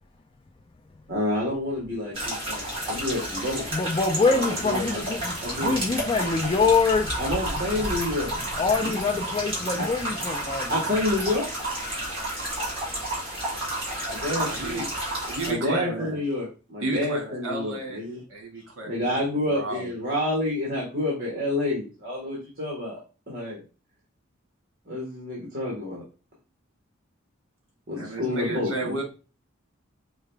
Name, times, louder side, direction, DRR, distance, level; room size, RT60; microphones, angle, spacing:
voice 1, 1.1-3.6 4.3-5.0 5.4-6.0 7.2-8.3 8.8-9.0 9.8-9.9 10.7-11.5 14.1-14.9 15.5-18.2 18.8-23.0 23.3-23.6 24.9-26.0 27.9-29.0, left 1 dB, 45° right, 1.3 m, -29 dB
sound 1, 2.1-15.5, right 1 dB, 30° right, 2.0 m, -31 dB
voice 2, 3.7-5.3 5.6-7.1 8.6-10.7, left 4 dB, 25° left, 0.4 m, -24 dB
voice 3, 14.3-14.9 15.2-16.2 16.8-18.0 18.3-19.9 28.0-29.0, right 2 dB, 75° right, 1.4 m, -33 dB
4.7 x 2.3 x 3.2 m
head